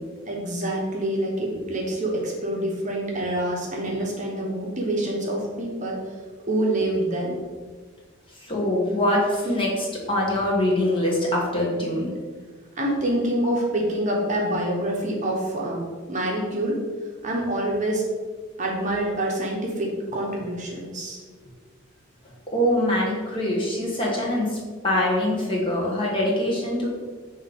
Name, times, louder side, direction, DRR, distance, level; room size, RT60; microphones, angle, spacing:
voice 1, 0.3-6.0 6.5-7.4 12.8-16.8 17.2-18.0 18.6-21.2, right 1 dB, 35° right, -2 dB, 1.0 m, -26 dB
voice 2, 8.4-12.1 22.5-24.6 24.8-26.9, left 1 dB, 25° left, -4 dB, 1.5 m, -23 dB
5.7 x 3.3 x 5.3 m, 1.5 s
head